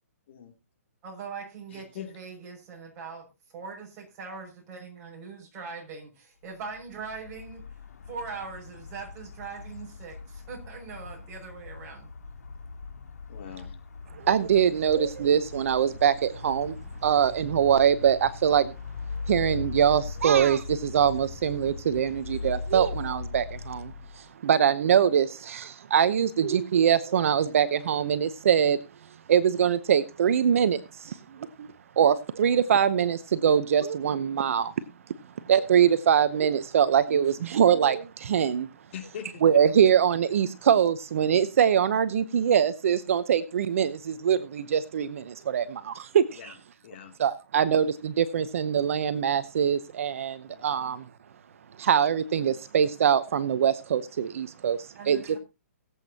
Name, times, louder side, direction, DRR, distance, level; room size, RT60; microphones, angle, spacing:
voice 1, 1.0-3.3 3.5-6.1 6.4-7.6 8.1-12.1 54.9-55.4, right 5 dB, 25° right, -1 dB, 6.3 m, -41 dB
voice 2, 1.7-2.1 13.3-13.7 38.9-39.3 46.4-46.5 46.8-47.1 50.5-50.8, left 9 dB, 45° left, 4 dB, 2.8 m, -42 dB
sound 1, 6.7-24.2, left 4 dB, 90° left, 3.0 m, -40 dB
voice 3, 14.2-18.7 19.3-28.8 29.3-31.7 32.0-34.7 35.4-38.7 39.4-46.5 47.2-51.0 51.8-55.4, right 8 dB, 60° right, 13 dB, 0.8 m, -23 dB
22.0 x 8.2 x 2.9 m, 0.27 s
hypercardioid pair, 155°, 8 cm